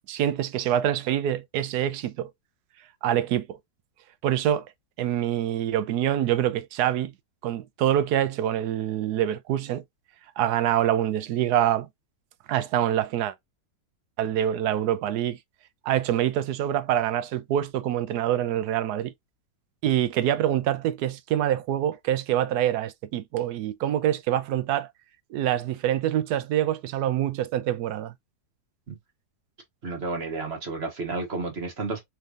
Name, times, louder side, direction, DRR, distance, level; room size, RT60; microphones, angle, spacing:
voice 1, 0.1-2.3 3.0-3.6 4.2-4.7 5.0-7.1 7.4-9.8 10.4-11.9 12.5-13.3 14.2-15.4 15.8-19.1 19.8-24.9 25.3-28.1, right 11 dB, 80° right, 1.1 m, -25 dB
voice 2, 29.8-32.0, right 3 dB, 40° right, 1.4 m, -31 dB
4.4 x 3.3 x 2.4 m
omnidirectional pair, 1.7 m